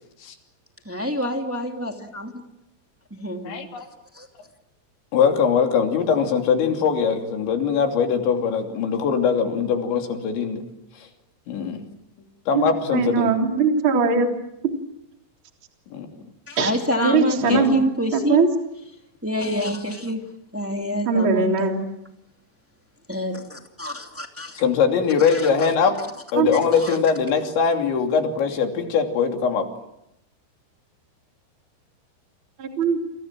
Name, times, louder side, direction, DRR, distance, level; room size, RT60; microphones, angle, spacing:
voice 1, 0.8-2.4 3.1-3.9 4.1-4.3 16.5-18.5 19.2-20.2 20.5-21.9 23.1-24.6 25.3-25.4 26.8-27.0, equal, 5° right, 3 dB, 1.1 m, -27 dB
voice 2, 3.4-3.9 5.1-10.6 10.9-11.1 11.5-11.8 12.5-13.3 15.9-16.1 17.4-17.7 24.5-26.0 26.3-29.7, left 6 dB, 70° left, 4 dB, 5.1 m, -21 dB
voice 3, 12.9-14.3 14.6-14.7 16.6-16.7 17.0-17.8 18.1-18.5 21.0-21.8 26.4-26.5 32.6-33.0, right 5 dB, 30° right, 3 dB, 3.5 m, -20 dB
29.0 x 27.0 x 7.6 m, 0.82 s
omnidirectional pair, 5.4 m